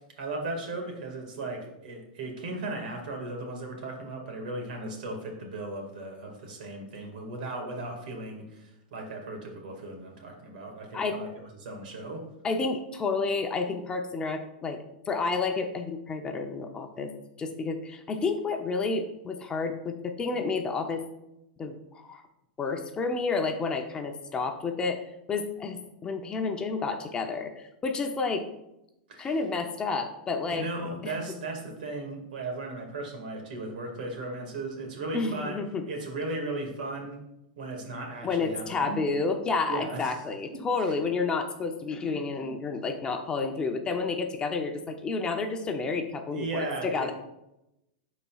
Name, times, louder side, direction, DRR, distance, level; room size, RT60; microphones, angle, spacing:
voice 1, 0.2-11.3 11.6-12.2 29.1-29.3 30.5-35.6 35.9-37.2 37.6-39.0 39.7-40.1 40.8-41.0 46.3-47.1, right 2 dB, 75° right, 2 dB, 1.9 m, -36 dB
voice 2, 12.4-21.0 21.6-22.2 22.6-28.5 29.2-30.7 31.0-31.2 35.1-35.8 38.2-47.1, left 4 dB, 20° left, 5 dB, 0.6 m, -30 dB
11.0 x 4.2 x 2.3 m, 0.87 s
supercardioid pair, 140°, 5 cm